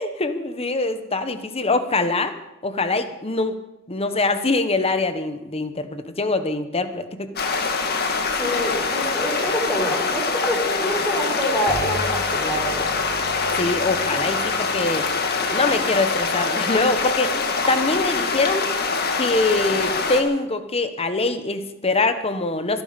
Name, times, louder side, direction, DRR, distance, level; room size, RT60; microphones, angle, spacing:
voice 1, 0.0-2.3 2.6-3.6 3.9-7.3 13.6-15.1 15.5-18.7 19.2-22.8, left 3 dB, 30° left, 9 dB, 1.2 m, -23 dB
sound 1, 7.4-20.2, left 4 dB, 50° left, 1.8 m, -24 dB
voice 2, 8.3-12.9, equal, 10° left, -1 dB, 4.8 m, -26 dB
Bowed string instrument, 11.7-17.3, equal, 10° right, 6.8 m, -39 dB
25.5 x 11.0 x 5.3 m, 0.93 s
head